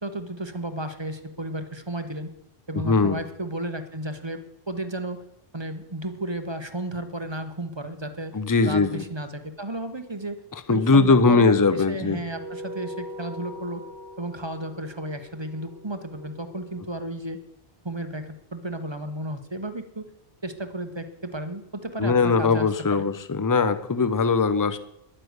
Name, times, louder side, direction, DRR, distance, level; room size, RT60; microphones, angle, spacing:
voice 1, 0.0-2.3 2.7-5.2 5.5-8.4 8.6-10.4 10.7-13.8 14.2-17.4 17.8-20.1 20.4-23.1, right 1 dB, 25° right, 8 dB, 1.1 m, -33 dB
voice 2, 2.8-3.2 8.3-9.0 10.7-12.2 22.0-24.8, left 4 dB, 20° left, 11 dB, 0.7 m, -20 dB
sound 1, 12.3-17.1, equal, 75° right, 1.3 m, -41 dB
11.0 x 9.9 x 8.0 m, 0.81 s
omnidirectional pair, 1.0 m